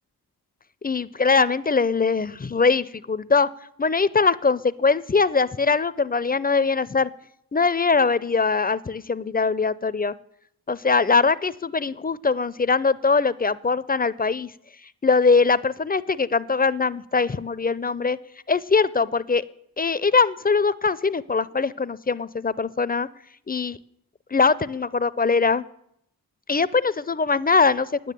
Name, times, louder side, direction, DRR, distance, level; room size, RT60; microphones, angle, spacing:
voice 1, 0.8-3.5 3.8-7.1 7.5-10.1 10.7-14.5 15.0-18.2 18.5-19.4 19.8-23.1 23.5-23.8 24.3-25.6 26.5-27.9, left 4 dB, 20° left, 18 dB, 0.6 m, -22 dB
9.7 x 9.4 x 8.4 m, 0.73 s
supercardioid pair, 40°, 41 cm